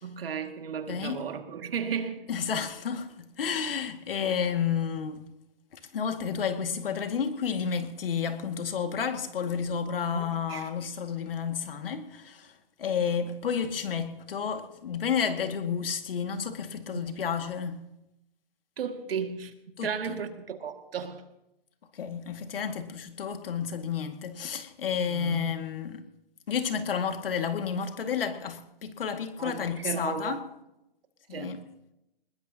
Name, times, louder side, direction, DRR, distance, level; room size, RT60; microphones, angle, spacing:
voice 1, 0.0-2.3 10.1-10.7 16.9-17.0 18.8-21.2 25.1-25.5 29.4-30.4 31.3-31.5, right 6 dB, 75° right, 2.2 m, -35 dB
voice 2, 0.9-1.2 2.3-5.2 5.9-12.5 12.8-17.8 19.8-20.1 21.9-26.0 26.5-30.4 31.3-31.6, left 7 dB, 70° left, 2.1 m, -31 dB
21.5 x 20.5 x 2.9 m
hypercardioid pair, 165°, 29 cm